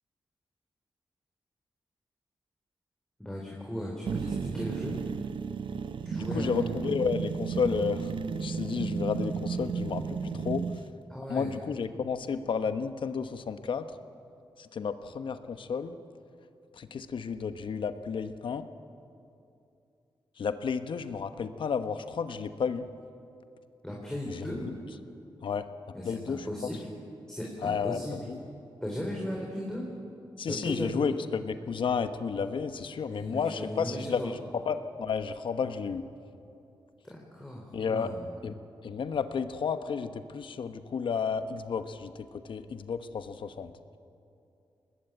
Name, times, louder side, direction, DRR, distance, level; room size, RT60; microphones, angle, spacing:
voice 1, 3.2-5.0 6.1-6.7 11.1-11.5 23.8-24.7 25.9-26.9 27.3-28.2 28.8-29.9 30.5-31.1 33.1-34.3 37.0-38.4, equal, 5° left, -2 dB, 3.9 m, -36 dB
sound 1, 4.1-10.8, right 5 dB, 70° right, 0.8 m, -33 dB
voice 2, 6.2-10.7 11.3-13.9 14.6-16.0 16.8-18.7 20.4-22.9 24.3-24.7 25.4-25.7 26.0-26.4 27.6-28.4 30.4-34.4 34.6-36.1 37.7-38.1 38.4-38.6 38.8-43.7, left 6 dB, 70° left, 10 dB, 1.1 m, -32 dB
21.5 x 19.5 x 9.0 m, 2.7 s
cardioid pair, 85°, 9 cm